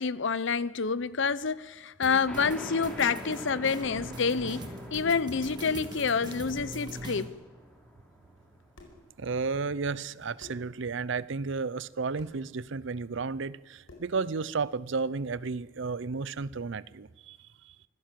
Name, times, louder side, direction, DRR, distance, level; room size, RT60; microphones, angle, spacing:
voice 1, 0.0-7.3, left 5 dB, 65° left, 0.7 m, -28 dB
sound 1, 2.0-7.3, right 1 dB, 20° right, 2.1 m, -42 dB
sound 2, 2.3-9.4, equal, 5° left, 3.2 m, -45 dB
sound 3, 6.9-7.2 8.4-8.5 8.8-9.1 10.4-10.7 12.2-12.4 13.9-14.2, left 2 dB, 85° left, 4.8 m, -52 dB
voice 2, 9.2-17.4 17.6-17.7, right 4 dB, 65° right, 0.6 m, -33 dB
24.5 x 15.5 x 7.5 m
head